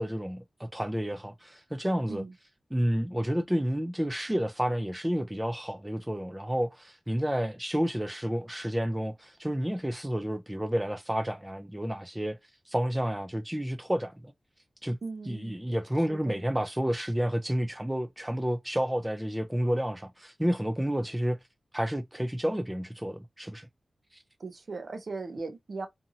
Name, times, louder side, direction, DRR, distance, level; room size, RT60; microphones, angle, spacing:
voice 1, 0.0-2.2 2.7-12.4 12.7-14.3 14.8-15.0 15.3-21.4 21.7-23.7 24.1-24.2, equal, 10° right, 0.4 m, -30 dB
voice 2, 15.0-15.6 16.1-16.4 24.4-25.9, right 3 dB, 55° right, 0.7 m, -38 dB
2.7 x 2.6 x 2.7 m
wide cardioid pair, 130°, 0 cm